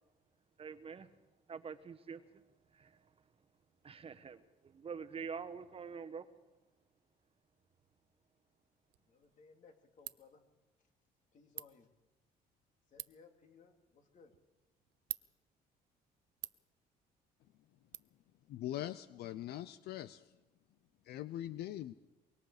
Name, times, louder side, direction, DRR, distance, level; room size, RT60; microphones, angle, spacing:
voice 1, 0.6-1.1 1.5-2.4 2.7-3.0 3.8-6.3, right 6 dB, 35° right, 11 dB, 1.2 m, -46 dB
Ratchet pawl, 8.9-18.0, right 17 dB, 80° right, 0.7 m, -52 dB
voice 2, 9.0-10.4 11.3-11.9 12.9-14.3, left 5 dB, 50° left, 4 dB, 3.3 m, -62 dB
voice 3, 18.5-20.4 21.0-21.9, left 13 dB, 70° left, 15 dB, 0.7 m, -42 dB
24.5 x 23.0 x 5.0 m, 1.1 s
cardioid pair, 110°, 17 cm